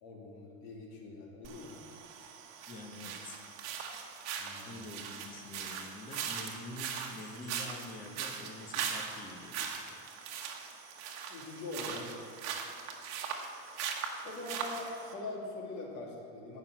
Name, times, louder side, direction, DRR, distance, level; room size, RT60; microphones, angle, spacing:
voice 1, 0.0-1.8 4.4-5.0 11.3-12.1 14.2-16.6, left 2 dB, 55° left, -1 dB, 2.7 m, -43 dB
sound 1, 1.4-15.1, right 7 dB, 45° right, 1.3 m, -40 dB
voice 2, 2.7-3.4 4.6-10.0, left 2 dB, 25° left, 4 dB, 1.1 m, -47 dB
12.0 x 6.1 x 9.0 m, 2.5 s
cardioid pair, 165°, 36 cm